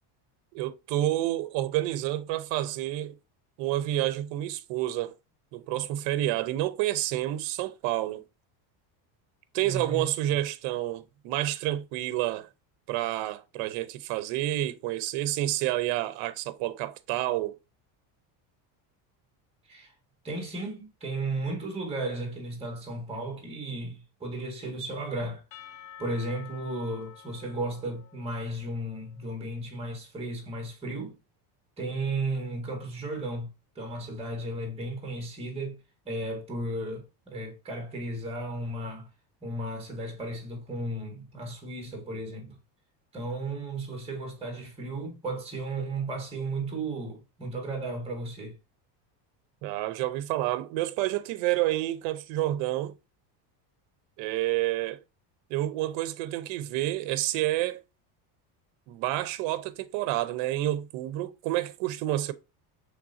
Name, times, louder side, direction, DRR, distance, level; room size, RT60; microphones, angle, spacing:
voice 1, 0.5-3.2 3.6-5.1 5.5-8.2 9.5-12.5 12.9-17.6 49.6-52.9 54.2-55.0 55.5-57.8 58.9-62.3, right 15 dB, 65° right, 0.8 m, -29 dB
voice 2, 9.6-10.1 19.7-19.9 20.2-25.4 26.0-31.2 31.8-33.5 33.7-35.8 36.0-39.1 39.4-42.6 43.1-48.6, right 2 dB, 10° right, 1.6 m, -34 dB
Percussion / Church bell, 25.5-29.5, left 10 dB, 35° left, 0.4 m, -50 dB
5.9 x 3.4 x 2.6 m
cardioid pair, 130°, 48 cm